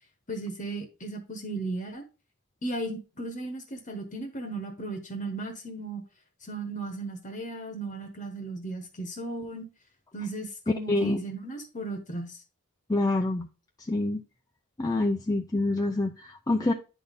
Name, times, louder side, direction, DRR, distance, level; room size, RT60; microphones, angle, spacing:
voice 1, 0.3-2.0 2.6-6.0 6.4-9.7 10.1-12.4, right 2 dB, 35° left, 1.1 m, -36 dB
voice 2, 10.9-11.2 12.9-13.5 13.9-14.2 14.8-16.7, left 2 dB, 15° left, 0.5 m, -26 dB
9.9 x 4.2 x 3.5 m
head